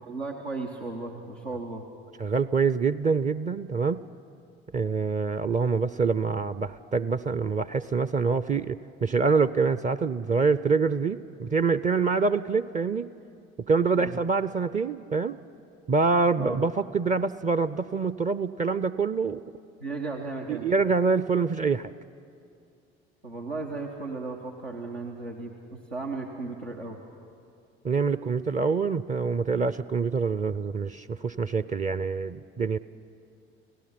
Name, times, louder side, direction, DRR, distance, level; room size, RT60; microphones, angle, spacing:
voice 1, 0.0-1.8 13.9-14.1 16.4-16.6 19.8-20.7 23.2-27.0, right 3 dB, 85° right, -1 dB, 1.3 m, -35 dB
voice 2, 2.2-4.1 4.7-13.1 13.7-15.4 15.9-19.4 20.5-21.9 27.8-32.8, right 4 dB, 25° right, 14 dB, 0.5 m, -25 dB
30.0 x 17.0 x 5.9 m, 2.5 s
figure-of-eight pair, 55°, 31 cm